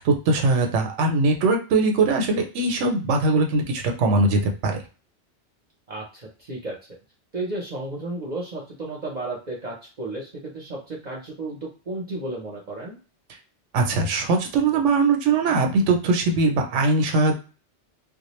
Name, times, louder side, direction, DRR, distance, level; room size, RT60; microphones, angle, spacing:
voice 1, 0.0-4.8 13.7-17.3, right 3 dB, 90° right, 4 dB, 0.9 m, -21 dB
voice 2, 5.9-6.8 7.3-13.0, right 2 dB, 45° right, -4 dB, 0.7 m, -33 dB
2.3 x 2.1 x 3.0 m, 0.34 s
omnidirectional pair, 1.2 m